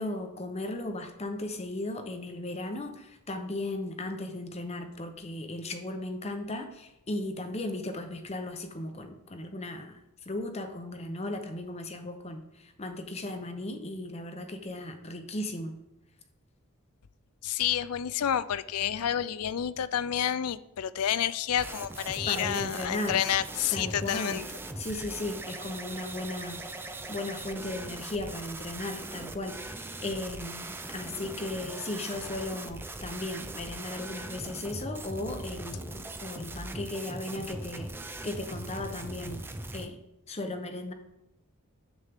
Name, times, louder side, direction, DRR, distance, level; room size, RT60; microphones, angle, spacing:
voice 1, 0.0-10.0 10.3-15.8 22.3-23.2 23.7-24.4 24.8-26.6 27.1-37.9 38.2-39.4 39.7-40.0 40.3-40.9, left 2 dB, 30° left, 0.8 m, -36 dB
voice 2, 17.4-24.4, left 10 dB, 85° left, 0.4 m, -29 dB
sound 1, 21.6-39.9, right 2 dB, 10° right, 0.4 m, -40 dB
9.7 x 7.4 x 3.6 m
head